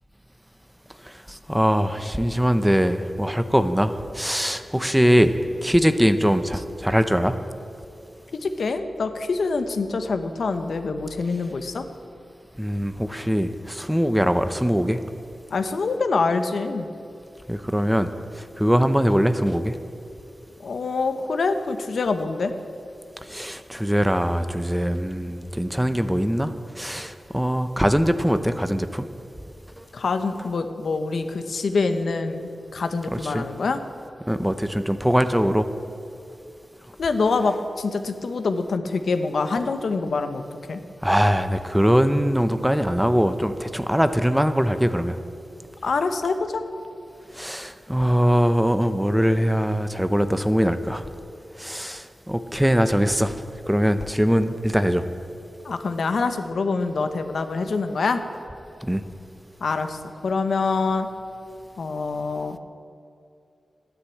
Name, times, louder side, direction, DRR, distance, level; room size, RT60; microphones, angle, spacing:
voice 1, 1.3-5.3 5.6-7.3 12.6-15.0 17.5-18.1 18.4-19.7 23.3-29.1 29.8-29.9 33.1-33.5 34.3-35.7 41.0-45.2 47.3-51.0 51.6-53.4 53.7-55.0 58.8-59.0, equal, 5° right, 10 dB, 0.7 m, -22 dB
voice 2, 8.4-11.8 15.5-16.9 20.6-22.5 29.9-33.8 37.0-40.4 40.7-40.8 45.8-46.6 55.6-58.2 59.6-61.1 61.8-62.6, left 4 dB, 80° left, 8 dB, 0.9 m, -25 dB
13.0 x 10.0 x 8.5 m, 2.6 s
wide cardioid pair, 90°, 0 cm